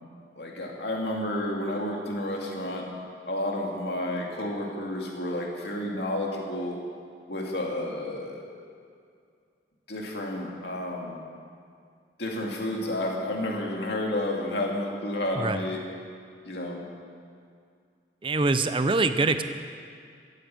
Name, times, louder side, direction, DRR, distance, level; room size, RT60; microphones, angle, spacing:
voice 1, 0.4-2.8 3.3-6.8 7.3-8.4 9.9-11.2 12.2-15.8 16.4-16.8, left 1 dB, 70° left, -1 dB, 2.4 m, -31 dB
voice 2, 18.2-19.4, right 3 dB, 30° right, 10 dB, 0.6 m, -24 dB
15.0 x 8.7 x 7.6 m, 2.3 s
head